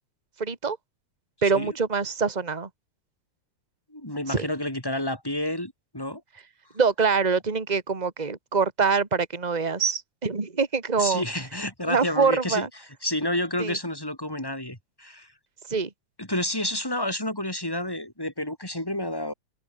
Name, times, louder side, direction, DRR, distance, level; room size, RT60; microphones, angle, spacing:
voice 1, 0.4-0.8 1.4-2.7 4.3-4.5 6.8-11.2 11.9-12.7 13.6-13.8 15.7-15.9, right 5 dB, 15° right, 2.3 m, -24 dB
voice 2, 3.9-6.2 11.0-12.7 13.0-15.3 16.2-19.3, left 1 dB, 5° left, 5.9 m, -30 dB
omnidirectional pair, 3.3 m